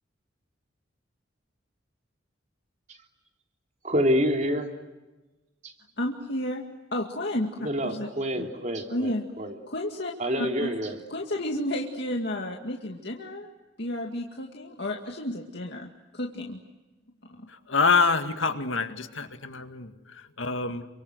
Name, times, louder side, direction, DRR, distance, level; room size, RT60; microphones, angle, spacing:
voice 1, 3.8-4.7 5.6-5.7 7.6-9.1 9.4-9.6 10.2-10.9, equal, 40° right, 3 dB, 3.4 m, -27 dB
voice 2, 6.0-6.6 6.9-8.1 8.4-8.5 8.9-9.3 9.7-10.1 10.4-10.7 11.1-13.5 13.8-16.6 17.2-17.5, left 1 dB, 60° left, 0 dB, 2.3 m, -32 dB
voice 3, 17.5-20.9, left 4 dB, 80° left, 7 dB, 2.0 m, -26 dB
29.0 x 25.0 x 8.0 m, 1.1 s
head